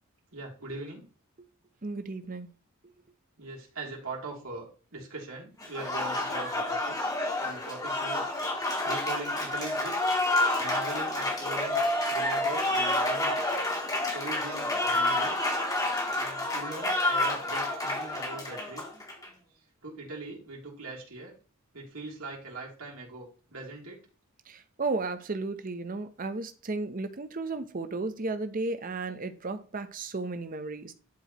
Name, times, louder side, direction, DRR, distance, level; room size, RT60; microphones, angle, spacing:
voice 1, 0.3-1.0 3.4-7.0 7.4-8.3 8.8-9.9 10.6-13.5 14.1-15.4 16.2-18.8 19.8-21.3 21.7-24.0, right 3 dB, 85° right, 3.0 m, -41 dB
voice 2, 1.8-2.5 24.5-30.9, right 3 dB, 40° right, 0.7 m, -34 dB
Applause, 5.6-19.3, left 1 dB, 15° left, 1.4 m, -29 dB
11.0 x 4.7 x 3.0 m
head